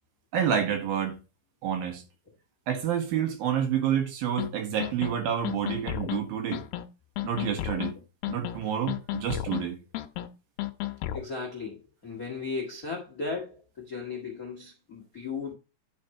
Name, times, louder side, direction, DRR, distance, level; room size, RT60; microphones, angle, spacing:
voice 1, 0.3-1.2 1.6-2.0 2.7-6.6 7.2-7.9 8.3-9.8, right 8 dB, 65° right, 3.1 m, -28 dB
sound 1, 4.4-4.5 4.8-5.1 5.4-6.2 6.5-6.8 7.2-7.9 8.2-8.6 8.9-9.6 9.9-10.3 10.6-11.2, left 14 dB, 85° left, 2.6 m, -32 dB
voice 2, 11.1-15.5, left 4 dB, 50° left, 1.0 m, -36 dB
10.0 x 5.2 x 4.3 m
omnidirectional pair, 4.8 m